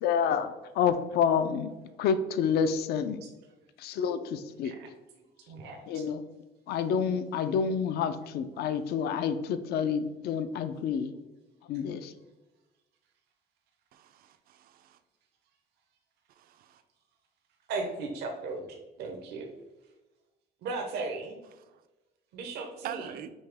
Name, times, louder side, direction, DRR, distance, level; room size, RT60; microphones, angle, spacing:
voice 1, 0.0-0.5 0.8-1.7 2.0-3.2 3.8-4.7 5.9-6.2 6.7-11.1 11.7-12.1, left 7 dB, 70° left, 10 dB, 0.4 m, -28 dB
voice 2, 5.5-6.0 17.7-19.5 20.6-21.4 22.3-23.1, right 3 dB, 75° right, 3 dB, 0.8 m, -37 dB
voice 3, 13.9-15.0 16.4-16.8 22.8-23.3, right 10 dB, 60° right, 10 dB, 0.4 m, -43 dB
5.4 x 2.8 x 3.4 m, 1.1 s
cardioid pair, 110°, 17 cm